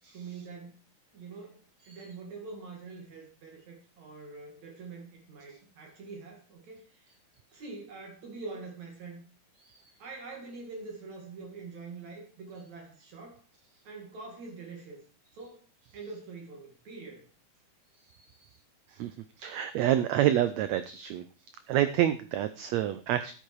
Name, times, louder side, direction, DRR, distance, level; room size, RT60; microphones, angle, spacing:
voice 1, 0.1-0.8 1.1-1.6 1.9-7.2 7.5-9.2 10.0-13.4 13.8-15.0 15.3-15.6 15.9-17.3, right 4 dB, 60° right, 1 dB, 3.4 m, -44 dB
voice 2, 18.1-18.5 18.9-21.3 21.7-23.3, right 12 dB, 80° right, 12 dB, 1.6 m, -28 dB
10.5 x 8.9 x 4.7 m, 0.37 s
omnidirectional pair, 3.7 m